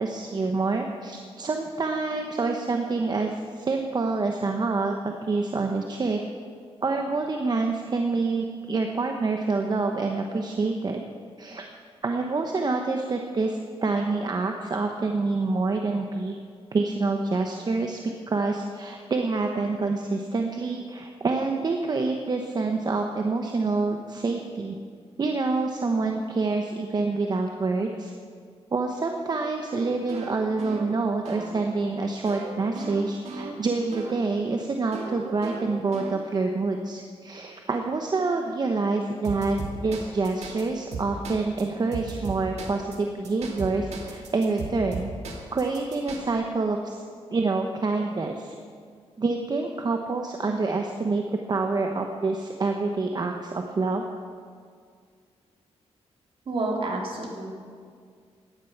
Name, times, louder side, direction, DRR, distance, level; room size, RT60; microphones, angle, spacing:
voice 1, 0.0-6.2 6.8-11.0 11.4-11.6 12.0-16.3 16.7-18.0 18.3-24.8 25.2-28.1 28.7-45.1 45.5-46.9 47.3-48.5 49.2-54.0, right 3 dB, 40° right, 3 dB, 1.0 m, -27 dB
sound 1, 29.7-34.3 34.9-36.6 39.2-40.6 40.9-41.6 41.9-43.0 43.2-46.2, right 4 dB, 85° right, 2.4 m, -37 dB
voice 2, 56.4-57.5, right 2 dB, 55° right, -1 dB, 3.2 m, -29 dB
16.5 x 11.5 x 5.9 m, 2.1 s
wide cardioid pair, 115°, 11 cm